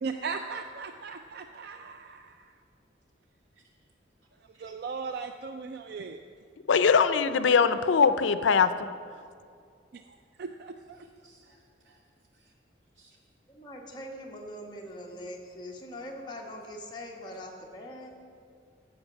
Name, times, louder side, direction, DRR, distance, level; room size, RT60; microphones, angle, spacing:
voice 1, 0.0-2.5 4.4-6.2 9.9-11.1, right 5 dB, 55° right, 7 dB, 0.4 m, -38 dB
voice 2, 6.7-8.9, left 5 dB, 80° left, 12 dB, 0.5 m, -22 dB
voice 3, 11.0-12.0 12.3-12.5 13.0-13.2, right 3 dB, 75° right, -2 dB, 2.2 m, -63 dB
voice 4, 13.5-18.1, left 1 dB, 25° left, -1 dB, 1.2 m, -42 dB
14.5 x 5.1 x 6.3 m, 2.3 s
head